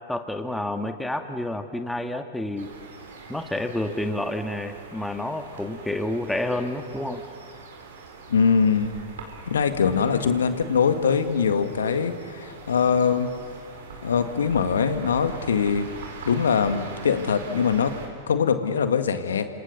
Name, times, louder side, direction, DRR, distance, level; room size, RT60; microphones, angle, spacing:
voice 1, 0.1-2.7 3.3-7.2, left 1 dB, 5° left, 6 dB, 1.8 m, -29 dB
sound 1, 2.6-18.1, right 4 dB, 70° right, 4.5 m, -43 dB
voice 2, 8.3-8.9 9.5-13.3 14.0-15.9 16.3-17.9 18.3-19.5, left 6 dB, 80° left, 9 dB, 1.9 m, -22 dB
29.0 x 26.5 x 6.7 m, 2.2 s
hypercardioid pair, 100°, 0 cm